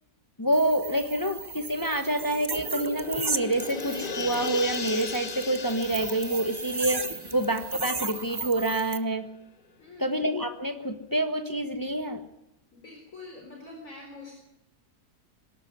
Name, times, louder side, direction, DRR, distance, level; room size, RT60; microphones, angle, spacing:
voice 1, 0.4-9.2 10.0-12.2, right 1 dB, 15° left, 7 dB, 1.2 m, -27 dB
sound 1, 0.5-9.0, right 4 dB, 35° right, 0.3 m, -36 dB
sound 2, 1.6-8.6 8.9-9.0, left 4 dB, 35° left, 1.3 m, -38 dB
voice 2, 9.8-10.1 12.7-14.3, left 3 dB, 55° left, 0 dB, 4.9 m, -45 dB
23.0 x 13.0 x 9.7 m, 0.84 s
omnidirectional pair, 1.6 m